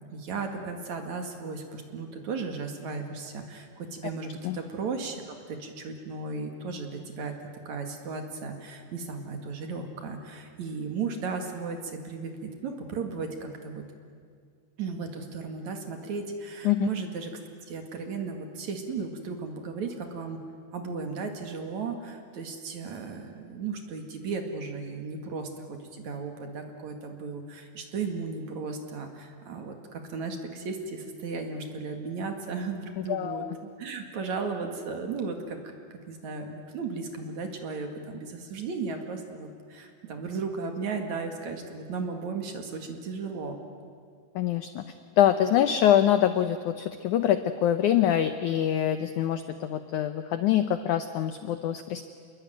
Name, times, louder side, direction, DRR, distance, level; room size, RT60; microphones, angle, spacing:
voice 1, 0.1-13.8 14.8-17.3 17.7-20.4 20.7-33.4 33.8-35.7 36.1-43.6, right 4 dB, 50° right, 4 dB, 3.1 m, -35 dB
voice 2, 33.0-33.6 44.3-44.8 45.2-52.0, left 10 dB, 80° left, 10 dB, 1.8 m, -25 dB
27.5 x 21.5 x 9.3 m, 2.1 s
omnidirectional pair, 4.5 m